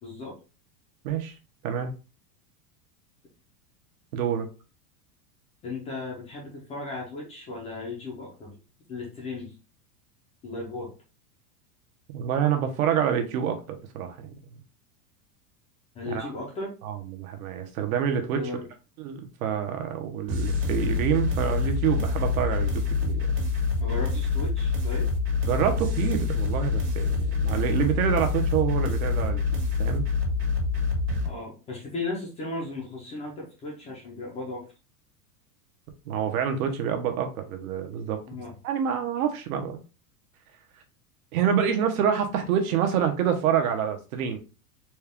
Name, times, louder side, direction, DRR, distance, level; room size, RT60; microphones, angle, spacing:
voice 1, 0.0-0.3 5.6-8.5 8.9-9.5 10.4-10.9 15.9-16.7 18.3-18.7 23.8-25.1 31.2-34.6 38.3-38.5, left 3 dB, 15° left, 0.5 m, -36 dB
voice 2, 1.0-1.3 1.6-1.9 4.1-4.5 12.1-14.3 16.0-16.3 16.8-18.4 19.0-23.3 25.4-29.4 29.8-30.1 36.1-38.2 38.6-39.8 41.3-44.4, right 8 dB, 60° right, 1.0 m, -27 dB
sound 1, 20.3-31.3, left 4 dB, 90° right, 1.8 m, -26 dB
4.3 x 2.3 x 3.4 m
supercardioid pair, 160°, 47 cm